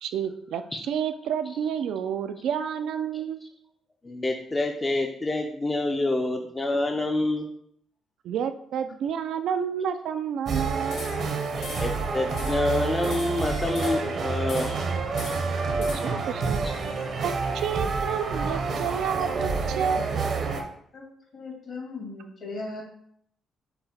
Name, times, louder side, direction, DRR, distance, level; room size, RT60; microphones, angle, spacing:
voice 1, 0.0-3.4 8.2-11.0 15.8-16.6 17.2-20.2, right 8 dB, 75° right, 9 dB, 0.3 m, -30 dB
voice 2, 4.0-7.5 11.8-14.8 16.6-16.7, left 2 dB, 20° left, 2 dB, 0.5 m, -27 dB
sound 1, 10.4-20.6, right 4 dB, 60° right, 0.7 m, -28 dB
sound 2, 10.9-11.3 11.6-12.0 12.4-12.7 13.0-14.1 14.5-14.9 15.2-16.3, left 3 dB, 80° left, 1.0 m, -41 dB
voice 3, 21.3-22.8, left 3 dB, 65° left, -2 dB, 1.9 m, -37 dB
5.6 x 2.2 x 4.2 m, 0.69 s
cardioid pair, 90°, 0 cm